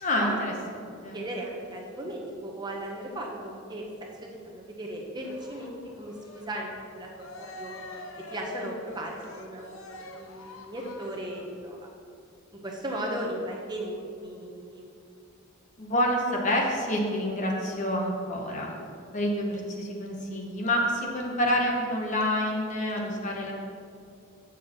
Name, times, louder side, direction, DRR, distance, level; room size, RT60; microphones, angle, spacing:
voice 1, 0.0-0.5 0.8-1.2 15.8-18.7 19.1-23.5, left 1 dB, 35° left, 0 dB, 1.0 m, -28 dB
voice 2, 1.1-7.7 8.3-9.8 10.1-11.9 12.5-14.9, right 1 dB, 20° right, -1 dB, 0.8 m, -37 dB
Cheering, 5.2-11.6, left 2 dB, 80° left, 0.7 m, -45 dB
7.3 x 6.3 x 4.3 m, 2.4 s
head